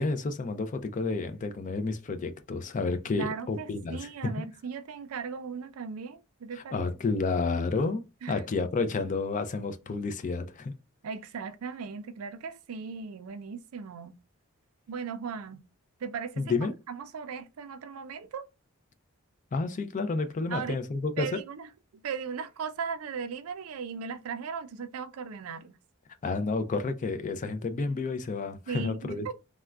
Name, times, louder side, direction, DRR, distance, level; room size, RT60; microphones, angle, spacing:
voice 1, 0.0-4.1 6.6-10.7 16.4-16.7 19.5-21.4 26.2-29.3, left 3 dB, 35° left, 0.4 m, -30 dB
voice 2, 3.2-6.9 8.2-8.4 11.0-14.1 14.9-15.6 16.0-18.5 20.5-20.8 21.2-21.7 21.9-25.8 28.7-29.3, right 6 dB, 75° right, 0.4 m, -37 dB
3.5 x 2.1 x 2.3 m
head